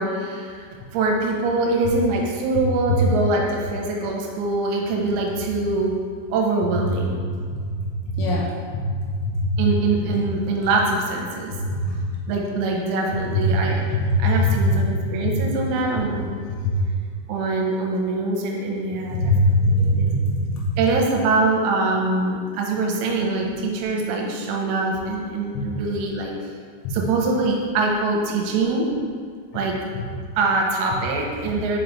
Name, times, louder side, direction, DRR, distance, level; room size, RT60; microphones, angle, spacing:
voice 1, 0.0-5.9 6.3-7.2 9.6-11.5 12.3-13.8 14.2-16.3 17.3-20.1 20.8-26.3 26.9-28.9 29.5-29.8 30.4-31.8, right 3 dB, 85° right, 0 dB, 2.7 m, -23 dB
voice 2, 8.1-8.8 9.3-9.5 11.6-11.9 14.2-14.7 16.6-16.7 19.1-20.6 25.5-25.6 26.8-26.9, left 1 dB, 85° left, -3 dB, 2.8 m, -21 dB
6.3 x 4.9 x 3.0 m, 2.1 s
omnidirectional pair, 5.3 m